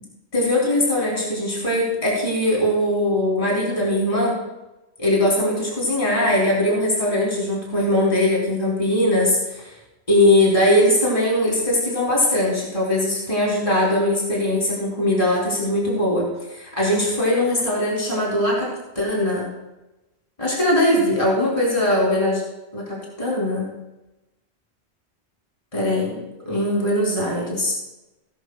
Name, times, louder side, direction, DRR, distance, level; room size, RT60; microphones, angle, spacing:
voice 1, 0.3-4.4 5.0-9.7 10.1-18.7 19.0-19.5 20.4-22.4 22.7-23.7 25.7-26.2 26.5-27.7, left 1 dB, 30° left, -4 dB, 3.7 m, -20 dB
19.5 x 11.0 x 2.4 m, 0.99 s
omnidirectional pair, 1.1 m